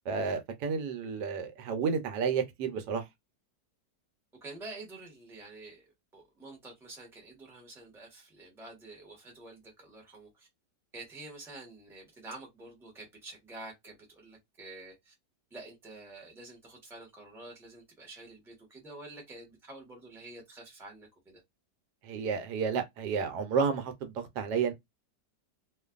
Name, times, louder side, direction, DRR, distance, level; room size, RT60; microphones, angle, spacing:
voice 1, 0.1-3.1 22.0-24.7, right 6 dB, 85° right, 1.2 m, -31 dB
voice 2, 4.4-5.9 6.1-10.5 10.9-15.1 15.5-21.4, right 2 dB, ahead, 0.7 m, -48 dB
2.5 x 2.4 x 2.3 m
omnidirectional pair, 1.8 m